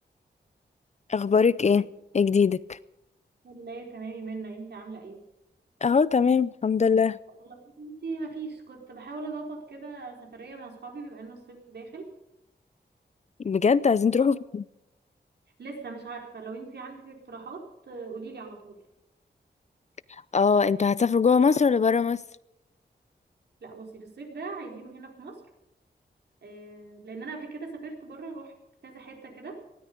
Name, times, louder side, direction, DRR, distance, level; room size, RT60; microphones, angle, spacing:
voice 1, 1.1-1.9 2.1-2.8 5.8-7.2 13.4-14.6 20.1-22.2, left 5 dB, 40° left, 19 dB, 0.4 m, -22 dB
voice 2, 3.4-5.2 7.4-12.1 14.2-14.3 15.6-18.8 23.6-25.4 26.4-28.5 28.8-29.6, right 4 dB, 70° right, 1 dB, 4.2 m, -40 dB
19.0 x 13.5 x 5.2 m, 0.91 s
wide cardioid pair, 140°, 18 cm